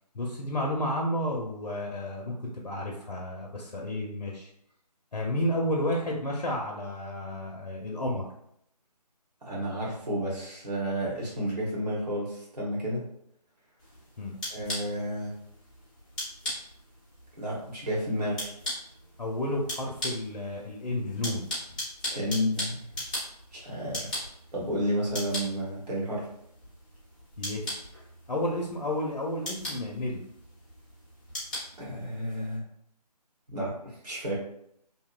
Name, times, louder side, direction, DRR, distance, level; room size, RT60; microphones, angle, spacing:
voice 1, 0.1-4.5 5.1-8.2 14.2-14.4 19.2-21.5 27.4-27.7 28.3-30.2, left 1 dB, 75° left, -1 dB, 0.6 m, -31 dB
voice 2, 9.4-13.0 14.5-15.4 17.4-18.5 22.1-22.8 23.5-24.2 24.5-26.3 31.8-32.6 33.5-34.4, equal, 70° right, -5 dB, 1.1 m, -31 dB
sound 1, 13.8-32.6, left 1 dB, 10° left, 0.6 m, -40 dB
2.7 x 2.1 x 2.3 m, 0.73 s
figure-of-eight pair, 155°, 21 cm